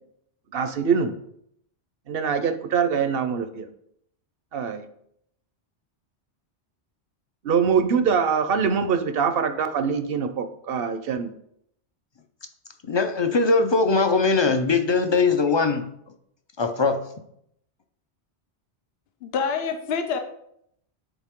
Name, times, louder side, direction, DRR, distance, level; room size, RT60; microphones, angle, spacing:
voice 1, 0.5-1.1 2.1-3.7 4.5-4.8 7.4-11.3, right 6 dB, 60° right, 9 dB, 0.8 m, -23 dB
voice 2, 12.9-15.8 16.6-17.0, left 4 dB, 30° left, 7 dB, 0.5 m, -21 dB
voice 3, 19.2-20.2, left 5 dB, 65° left, 6 dB, 0.9 m, -26 dB
10.0 x 4.2 x 3.7 m, 0.73 s
omnidirectional pair, 1.1 m